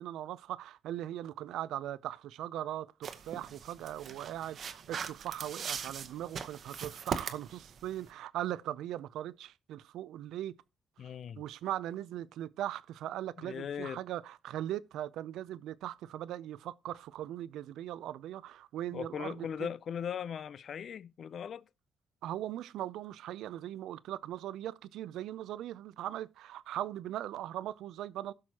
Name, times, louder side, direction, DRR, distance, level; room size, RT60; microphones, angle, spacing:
voice 1, 0.0-10.5 11.4-19.7 22.2-28.3, right 12 dB, 85° right, 0.4 m, -39 dB
sound 1, 3.0-8.1, right 6 dB, 55° right, 0.9 m, -40 dB
voice 2, 11.0-11.4 13.4-14.0 18.9-21.7, left 8 dB, 60° left, 0.4 m, -39 dB
16.5 x 6.1 x 2.9 m
cardioid pair, 90°, 0 cm